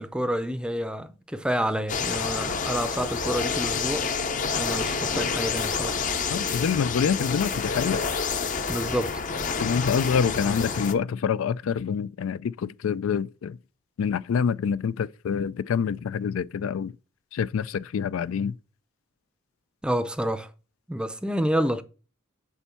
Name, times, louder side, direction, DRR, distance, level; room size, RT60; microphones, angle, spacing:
voice 1, 0.0-4.1 4.6-6.0 8.7-9.1 19.8-20.5 20.9-21.8, equal, 5° right, 0.5 m, -28 dB
sound 1, 1.9-10.9, left 5 dB, 40° left, 0.7 m, -28 dB
voice 2, 6.3-8.0 9.6-13.6 14.0-16.9 17.3-18.6, left 7 dB, 75° left, 0.3 m, -26 dB
7.0 x 4.5 x 5.7 m
head